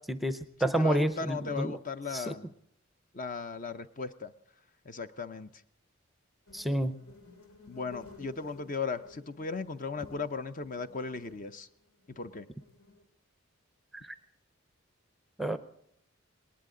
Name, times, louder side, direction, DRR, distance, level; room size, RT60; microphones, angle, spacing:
voice 1, 0.1-1.7 2.1-2.3 6.5-7.0 15.4-15.6, right 1 dB, ahead, 11 dB, 0.6 m, -29 dB
voice 2, 0.6-2.5 3.1-4.3 4.9-5.5 7.7-11.7 12.1-12.5, left 4 dB, 40° left, 11 dB, 0.6 m, -37 dB
sound 1, 6.5-13.0, left 2 dB, 85° left, 2.8 m, -55 dB
20.0 x 19.0 x 3.8 m, 0.72 s
head